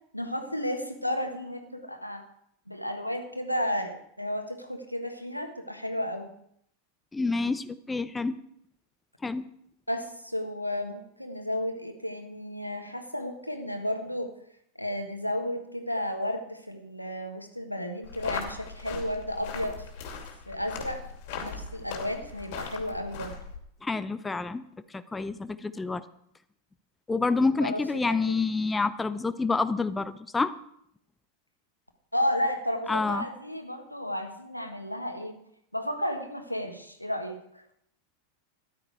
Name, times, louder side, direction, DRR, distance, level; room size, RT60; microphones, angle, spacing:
voice 1, 0.1-2.3 2.7-6.3 9.9-14.3 14.8-19.9 20.5-21.1 21.4-23.3 27.6-27.8 28.1-28.2 32.1-35.4 35.7-37.6, left 1 dB, 90° left, 6 dB, 1.5 m, -33 dB
voice 2, 7.1-8.4 9.2-9.4 23.8-24.6 24.9-26.0 27.1-30.5 32.9-33.3, left 3 dB, 10° left, 13 dB, 0.6 m, -28 dB
sound 1, 18.0-23.6, left 6 dB, 50° left, 2.6 m, -39 dB
13.5 x 11.5 x 4.7 m, 0.72 s
figure-of-eight pair, 90°, 0 cm